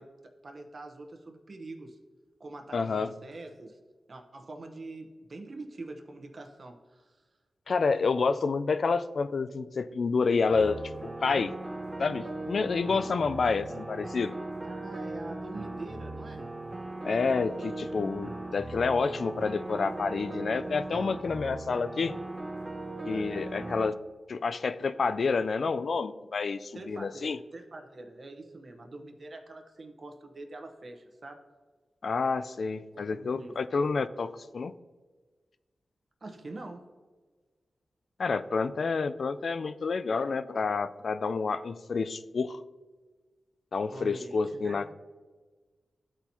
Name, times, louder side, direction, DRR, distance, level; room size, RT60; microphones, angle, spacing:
voice 1, 0.0-2.0 2.4-3.8 4.1-7.2 14.6-16.5 23.1-23.5 26.7-31.4 32.9-33.6 36.2-36.9 43.9-44.8, right 2 dB, 50° right, 3 dB, 0.9 m, -44 dB
voice 2, 2.7-3.1 7.7-10.8 11.2-11.5 12.0-14.3 17.0-22.1 23.0-23.9 24.3-27.4 32.0-34.7 38.2-42.6 43.7-44.9, left 4 dB, 65° left, 13 dB, 0.3 m, -29 dB
sound 1, 10.5-23.9, right 2 dB, 25° right, 0.6 m, -38 dB
13.0 x 4.4 x 2.7 m, 1.4 s
cardioid pair, 65°, 0 cm